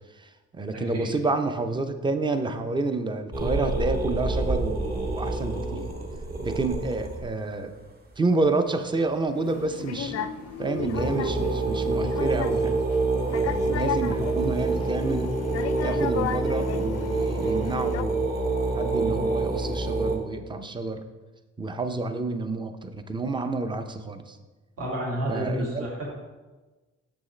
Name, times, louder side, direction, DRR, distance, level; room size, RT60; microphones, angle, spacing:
voice 1, 0.2-5.9 6.4-7.7 8.2-10.3 10.6-12.8 13.3-15.3 15.8-18.2 18.7-21.0 21.6-24.4 25.3-25.9, right 3 dB, 15° right, 8 dB, 0.5 m, -29 dB
voice 2, 0.7-1.1 24.8-26.1, right 1 dB, 50° right, -4 dB, 2.0 m, -30 dB
sound 1, 3.3-7.3 10.0-10.1 10.5-10.6 10.8-20.2, right 3 dB, 30° right, 1.2 m, -27 dB
sound 2, 9.4-18.0, left 9 dB, 55° left, 0.4 m, -34 dB
7.0 x 6.2 x 3.2 m, 1.2 s
cardioid pair, 90°, 30 cm